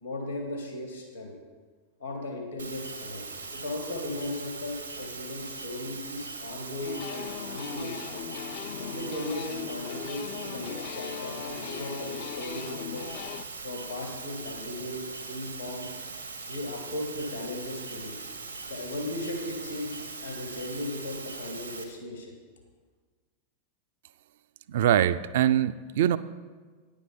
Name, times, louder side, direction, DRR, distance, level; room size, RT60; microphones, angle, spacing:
voice 1, 0.0-1.3 2.0-3.3 3.5-8.1 8.8-13.1 13.6-15.0 15.3-15.9 16.5-18.2 18.7-22.3, left 1 dB, 85° left, 1 dB, 1.7 m, -37 dB
sound 1, 2.6-21.8, right 4 dB, 80° right, 1.1 m, -40 dB
sound 2, 6.8-13.4, left 12 dB, 50° left, 0.3 m, -39 dB
voice 2, 24.7-26.2, right 11 dB, 55° right, 15 dB, 0.3 m, -23 dB
9.8 x 7.1 x 5.8 m, 1.4 s
figure-of-eight pair, 90°, 0 cm